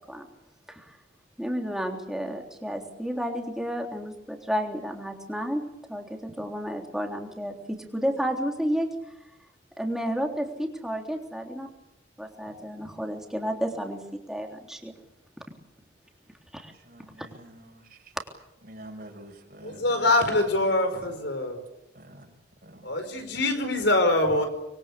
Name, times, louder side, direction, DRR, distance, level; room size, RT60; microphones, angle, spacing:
voice 1, 1.4-8.9 9.8-11.7 12.2-14.9 16.5-16.7 17.2-17.3, equal, 5° right, 2 dB, 3.4 m, -31 dB
voice 2, 16.7-18.2 18.6-21.2 21.9-22.3 22.6-22.9, right 1 dB, 50° right, 3 dB, 5.7 m, -47 dB
voice 3, 19.6-21.6 22.8-24.5, left 2 dB, 65° left, 7 dB, 5.0 m, -24 dB
25.5 x 23.0 x 8.4 m, 0.88 s
head